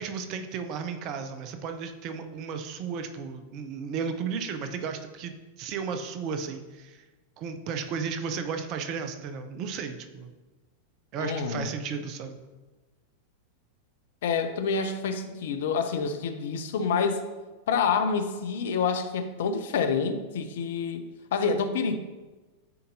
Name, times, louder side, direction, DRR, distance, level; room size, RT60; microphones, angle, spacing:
voice 1, 0.0-7.1 7.4-10.3 11.1-12.4, right 6 dB, 40° right, 7 dB, 0.6 m, -34 dB
voice 2, 11.2-11.7 14.2-17.2 17.7-22.0, left 5 dB, 55° left, 8 dB, 0.5 m, -27 dB
9.4 x 4.0 x 2.7 m, 1.2 s
figure-of-eight pair, 90°, 0 cm